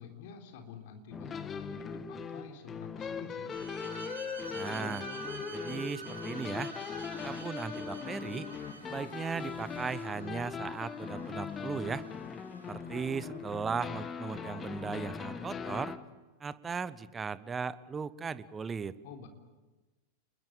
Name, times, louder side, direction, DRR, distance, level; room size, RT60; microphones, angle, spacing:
voice 1, 0.0-3.6 19.0-19.3, left 6 dB, 50° left, 4 dB, 3.9 m, -49 dB
sound 1, 1.1-16.0, left 6 dB, 20° left, 1.5 m, -40 dB
Bowed string instrument, 3.5-9.0, right 5 dB, 75° right, 3.7 m, -47 dB
voice 2, 4.5-5.1 5.5-6.7 7.2-8.5 8.8-12.0 12.7-16.0 16.4-19.0, right 5 dB, 20° right, 17 dB, 1.0 m, -37 dB
sound 2, 5.2-16.0, equal, 90° left, 3.3 m, -56 dB
29.5 x 21.5 x 8.8 m, 1.2 s
figure-of-eight pair, 90°, 0 cm